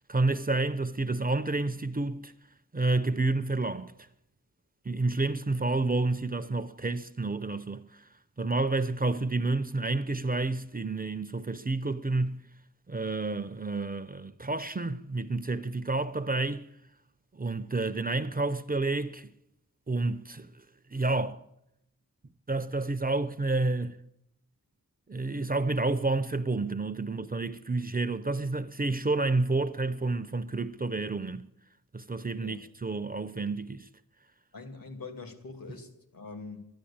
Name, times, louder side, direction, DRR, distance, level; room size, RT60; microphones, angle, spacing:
voice 1, 0.1-2.3 2.7-3.9 4.9-7.9 8.4-12.5 12.9-16.7 17.3-19.3 19.9-20.5 20.9-21.4 22.5-24.0 25.1-31.4 31.9-33.9, right 3 dB, 25° right, 0.6 m, -29 dB
voice 2, 34.5-36.7, left 3 dB, 75° left, 2.5 m, -44 dB
11.5 x 11.0 x 8.7 m
wide cardioid pair, 75°, 35 cm